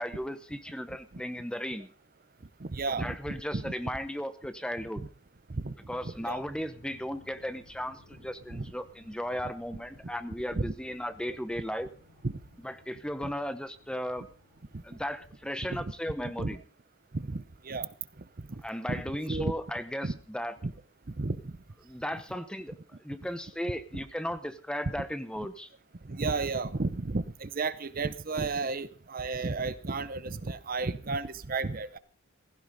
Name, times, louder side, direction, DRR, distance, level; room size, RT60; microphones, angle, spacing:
voice 1, 0.0-1.9 2.9-5.1 5.9-11.9 12.6-14.3 14.8-16.6 18.6-20.6 21.8-22.8 23.0-25.7, equal, 5° left, 0.8 m, -36 dB
voice 2, 2.6-3.7 5.6-5.7 6.0-6.4 8.5-8.7 10.5-10.7 12.2-12.3 15.7-15.8 16.4-16.5 17.1-17.9 18.9-19.0 19.3-19.5 20.0-20.2 20.6-20.7 21.2-21.5 23.9-24.0 26.0-32.0, right 3 dB, 40° right, 0.7 m, -32 dB
sound 1, 6.3-16.2, left 2 dB, 75° left, 4.8 m, -59 dB
16.0 x 15.5 x 4.0 m
head